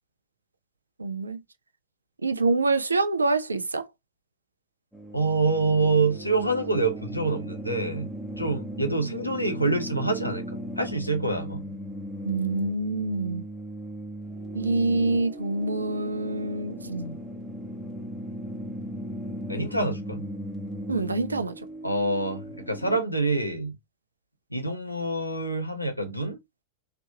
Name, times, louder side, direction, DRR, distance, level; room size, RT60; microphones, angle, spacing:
voice 1, 1.0-1.4 2.2-3.8 12.3-13.4 14.5-17.2 20.9-21.5, right 3 dB, 80° right, 0.4 m, -26 dB
sound 1, 4.9-23.0, equal, 5° right, 1.1 m, -37 dB
voice 2, 5.1-8.1 8.4-11.6 19.5-20.3 21.8-23.7 24.5-26.4, right 3 dB, 90° left, 0.8 m, -26 dB
3.3 x 2.8 x 2.7 m
figure-of-eight pair, 90°, 0 cm